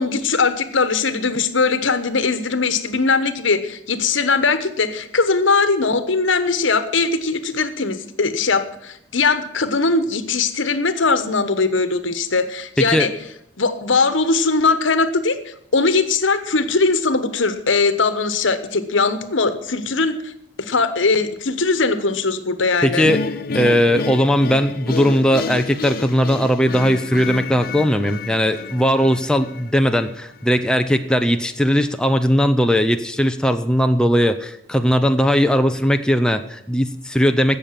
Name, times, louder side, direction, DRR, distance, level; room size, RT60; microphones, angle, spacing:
voice 1, 0.0-13.1 13.6-20.3 20.6-23.1, left 4 dB, 80° left, 11 dB, 1.2 m, -20 dB
voice 2, 12.8-13.1 22.8-23.2 23.5-37.6, equal, 5° left, 7 dB, 0.6 m, -18 dB
sound 1, 23.0-30.1, left 4 dB, 50° left, 0.5 m, -29 dB
16.5 x 6.8 x 7.4 m, 0.75 s
head